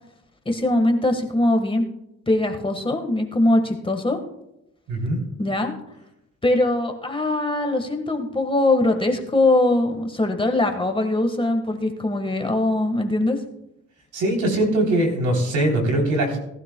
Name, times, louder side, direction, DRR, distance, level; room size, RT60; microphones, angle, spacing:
voice 1, 0.4-1.9 2.3-4.2 5.4-5.7 6.4-13.4, left 2 dB, 15° left, 4 dB, 1.5 m, -21 dB
voice 2, 4.9-5.2 14.1-16.4, right 1 dB, 80° right, 1 dB, 3.5 m, -21 dB
18.5 x 12.0 x 2.3 m, 0.86 s
cardioid pair, 90°, 30 cm